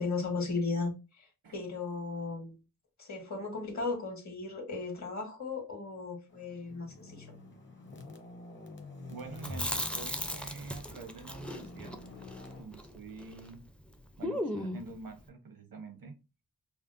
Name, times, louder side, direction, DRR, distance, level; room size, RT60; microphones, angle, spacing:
voice 1, 0.0-1.3 1.5-2.5 3.0-7.3, left 3 dB, 55° left, 1.8 m, -36 dB
sound 1, 6.3-12.6, left 3 dB, 35° left, 1.0 m, -49 dB
voice 2, 9.1-12.0 12.6-13.6 14.2-16.2, right 4 dB, 90° right, 1.0 m, -46 dB
Chewing mastication, 9.4-13.5 13.8-13.9 14.2-15.0, left 1 dB, 5° left, 0.5 m, -37 dB
5.5 x 2.1 x 2.6 m
wide cardioid pair, 105°, 34 cm